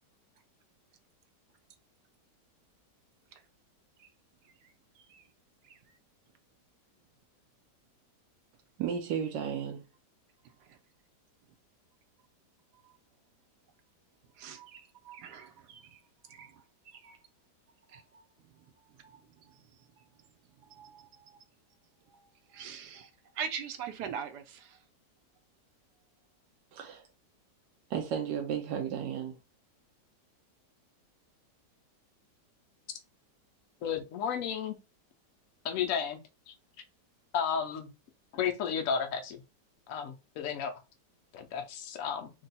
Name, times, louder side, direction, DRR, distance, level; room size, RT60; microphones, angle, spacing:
voice 1, 4.4-5.3 5.6-6.0 10.6-10.8 12.8-13.0 14.4-17.2 17.9-18.2 18.5-18.7 19.0-20.0 20.6-21.4 22.1-24.8, right 7 dB, 75° right, 1.1 m, -44 dB
voice 2, 8.8-9.8 26.7-27.1 27.9-29.4, right 8 dB, 90° right, 1.3 m, -33 dB
voice 3, 33.8-34.8 35.6-36.2 36.5-36.6 37.3-37.9 38.3-39.4 39.9-40.8 41.3-42.3, left 7 dB, 70° left, 0.7 m, -33 dB
3.7 x 2.3 x 4.0 m
omnidirectional pair, 1.9 m